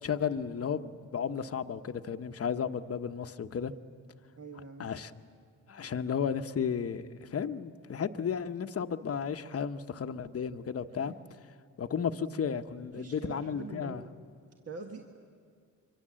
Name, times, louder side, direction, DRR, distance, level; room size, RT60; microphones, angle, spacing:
voice 1, 0.0-3.7 4.8-5.1 5.7-11.1 11.8-14.0, left 7 dB, 40° left, 9 dB, 1.0 m, -33 dB
voice 2, 4.3-4.9 11.0-11.2 12.9-14.1 14.7-15.2, right 4 dB, 45° right, 2 dB, 1.6 m, -44 dB
26.0 x 23.5 x 7.6 m, 2.1 s
cardioid pair, 90°, 35 cm